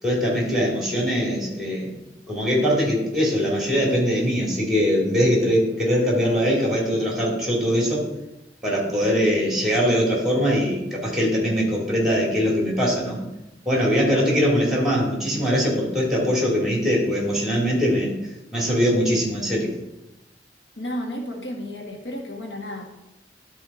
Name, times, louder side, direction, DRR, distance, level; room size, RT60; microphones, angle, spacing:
voice 1, 0.0-2.0 2.3-8.0 8.6-13.2 13.6-18.1 18.5-19.7, equal, ahead, -3 dB, 2.7 m, -22 dB
voice 2, 20.8-22.8, left 1 dB, 75° left, 1 dB, 1.5 m, -32 dB
11.5 x 4.6 x 4.2 m, 0.96 s
head